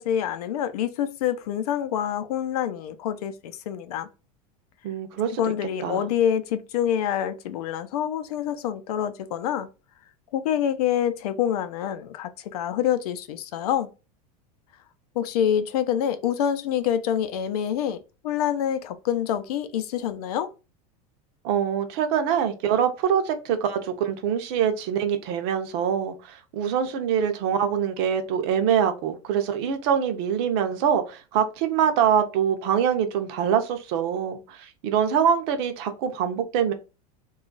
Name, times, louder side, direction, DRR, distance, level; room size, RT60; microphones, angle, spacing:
voice 1, 0.0-4.1 5.4-9.7 10.3-13.9 15.2-20.5, left 9 dB, 80° left, 0.5 m, -26 dB
voice 2, 4.8-5.4 5.8-6.1 21.4-36.7, right 8 dB, 45° right, 0.5 m, -24 dB
3.0 x 2.3 x 3.8 m
supercardioid pair, 170°, 19 cm